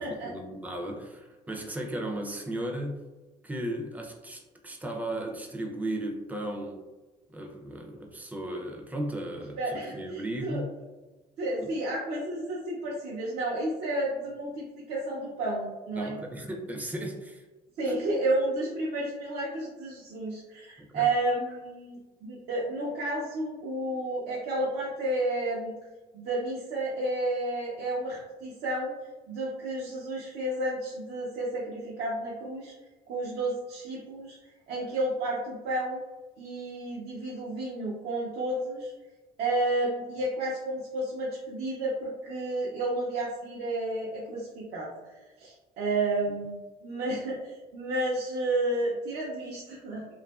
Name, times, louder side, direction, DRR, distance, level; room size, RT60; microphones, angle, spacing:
voice 1, 0.0-3.1 3.4-6.8 7.3-10.7 11.6-11.7 16.0-17.5 17.8-17.9 20.8-21.1, right 1 dB, 10° right, 1 dB, 0.4 m, -36 dB
voice 2, 9.6-10.6 11.4-16.1 17.8-25.8 26.1-28.9 29.3-32.7 33.1-34.4 34.7-36.0 36.4-38.9 39.4-50.0, right 1 dB, 75° right, -6 dB, 0.6 m, -31 dB
2.6 x 2.4 x 2.3 m, 1.2 s
cardioid pair, 110°, 17 cm